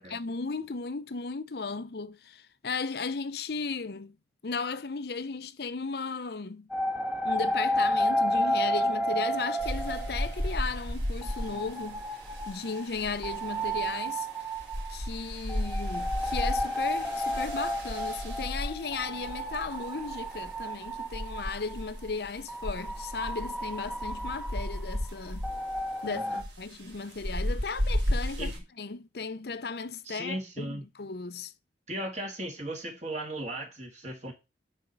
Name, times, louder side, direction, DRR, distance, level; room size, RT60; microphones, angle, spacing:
voice 1, 0.0-4.2 4.4-6.7 7.2-12.0 12.5-14.3 14.9-25.5 26.0-26.2 26.6-28.5 28.8-31.5, left 4 dB, 60° left, 0.7 m, -35 dB
sound 1, 6.7-10.8 11.2-21.8 22.5-26.4, equal, 5° right, 1.0 m, -32 dB
sound 2, 9.6-28.6, equal, 80° right, 3.6 m, -35 dB
voice 2, 26.0-26.4 28.4-28.6 30.0-30.8 31.9-34.3, right 1 dB, 40° right, 2.0 m, -37 dB
9.9 x 4.5 x 5.5 m
head